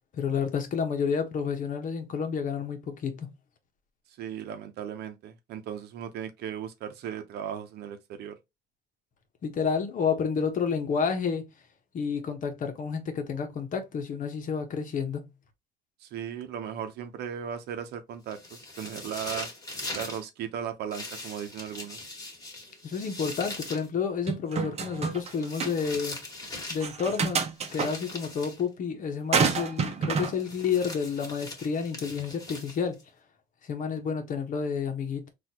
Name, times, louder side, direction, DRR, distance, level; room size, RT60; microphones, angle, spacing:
voice 1, 0.1-3.3 9.4-11.4 11.9-15.3 22.8-26.2 26.7-33.0 33.6-35.3, left 6 dB, 50° left, 1.0 m, -30 dB
voice 2, 4.2-8.4 16.0-19.5 19.9-22.0, right 9 dB, 75° right, 0.8 m, -37 dB
sound 1, 18.3-20.2 20.9-23.9 25.1-26.9 27.6-28.6 30.2-33.0, left 2 dB, 20° left, 1.6 m, -40 dB
sound 2, 24.3-25.3 25.6-25.7 26.8-27.9 29.3-30.3, right 5 dB, 40° right, 0.7 m, -27 dB
4.0 x 2.5 x 2.9 m
cardioid pair, 110°, 17 cm